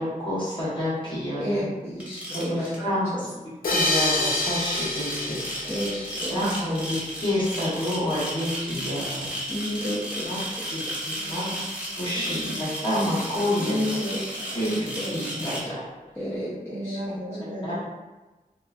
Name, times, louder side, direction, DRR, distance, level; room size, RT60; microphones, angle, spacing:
voice 1, 0.0-1.6 2.3-3.3 3.7-5.7 6.3-9.3 10.3-10.4 10.7-11.4 12.0-13.8 14.5-15.8 17.6-17.7, left 1 dB, 35° left, -10 dB, 1.3 m, -28 dB
voice 2, 1.4-2.7 3.1-3.2 5.6-6.8 9.5-10.6 13.6-15.3 16.2-17.0, equal, 15° left, -12 dB, 0.9 m, -32 dB
sound 1, 2.0-2.8 3.7-15.6, equal, 10° right, 1.0 m, -34 dB
sound 2, 3.6-7.0, left 2 dB, 85° left, 0.6 m, -27 dB
voice 3, 11.1-12.6 16.7-17.8, equal, 65° right, -3 dB, 0.8 m, -36 dB
4.2 x 2.2 x 2.4 m, 1.1 s
wide cardioid pair, 80°, 14 cm